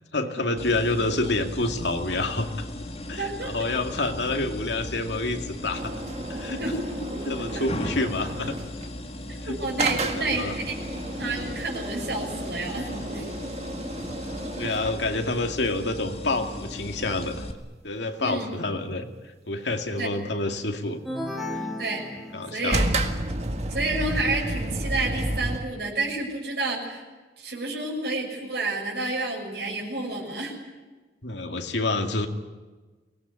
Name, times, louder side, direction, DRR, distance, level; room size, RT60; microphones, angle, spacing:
voice 1, 0.1-2.7 3.1-5.9 6.3-6.6 7.2-8.5 9.4-9.6 10.2-10.5 14.6-17.4 17.8-19.1 19.5-21.0 21.5-21.7 22.3-22.9 31.2-32.3, left 2 dB, 80° left, 5 dB, 2.3 m, -28 dB
sound 1, 0.6-17.5, left 1 dB, 35° left, 1.9 m, -37 dB
voice 2, 3.2-3.5 6.6-7.2 7.5-7.7 9.5-10.7 11.1-13.3 18.2-18.5 20.0-20.1 21.8-22.0 22.5-22.9 23.7-27.0 27.4-30.5, right 2 dB, 60° right, -2 dB, 6.6 m, -30 dB
sound 2, 5.7-8.9 9.8-15.1 22.7-25.6, right 1 dB, 35° right, 1.9 m, -31 dB
sound 3, 21.1-22.9, left 1 dB, ahead, 3.1 m, -34 dB
24.0 x 18.5 x 9.7 m, 1.3 s
head